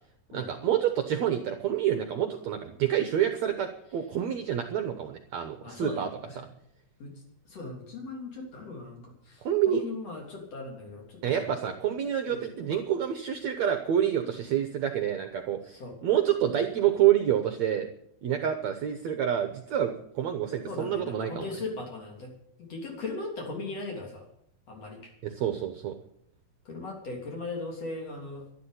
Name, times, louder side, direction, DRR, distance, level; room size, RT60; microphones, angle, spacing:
voice 1, 0.3-6.1 6.4-6.5 9.4-9.8 11.2-17.9 18.2-21.5 25.2-25.9, right 10 dB, 70° right, 7 dB, 1.8 m, -28 dB
voice 2, 5.6-6.4 7.0-7.1 7.5-11.4 12.3-12.5 15.7-15.9 20.7-22.3 22.6-24.2 24.7-25.1 26.7-28.5, left 3 dB, 45° left, 0 dB, 4.2 m, -38 dB
12.0 x 12.0 x 8.4 m, 0.70 s
omnidirectional pair, 4.3 m